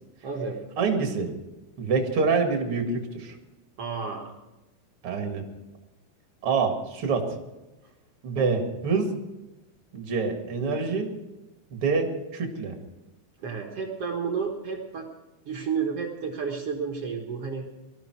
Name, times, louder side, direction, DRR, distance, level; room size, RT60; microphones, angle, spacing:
voice 1, 0.2-0.6 3.8-4.3 13.4-15.1 15.4-17.7, right 5 dB, 65° right, 1 dB, 1.5 m, -31 dB
voice 2, 0.8-1.3 1.8-3.4 5.0-5.4 6.4-7.3 8.2-9.1 9.9-11.1 11.7-12.8, right 4 dB, 45° right, 4 dB, 2.0 m, -26 dB
19.5 x 13.5 x 4.7 m, 1.0 s
omnidirectional pair, 4.9 m